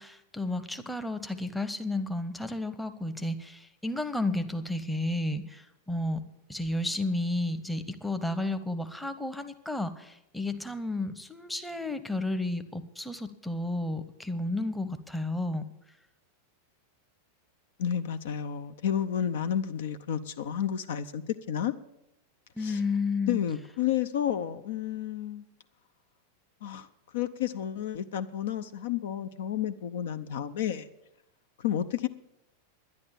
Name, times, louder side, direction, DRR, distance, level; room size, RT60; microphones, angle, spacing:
voice 1, 0.0-6.2 6.5-15.7 22.6-23.4, left 2 dB, 5° left, 9 dB, 0.9 m, -32 dB
voice 2, 17.8-21.2 21.5-21.7 22.6-22.8 23.3-25.4 26.6-26.9 27.1-30.9 31.6-32.1, left 10 dB, 55° left, 12 dB, 0.6 m, -31 dB
11.0 x 10.5 x 7.4 m, 0.88 s
figure-of-eight pair, 90°, 0 cm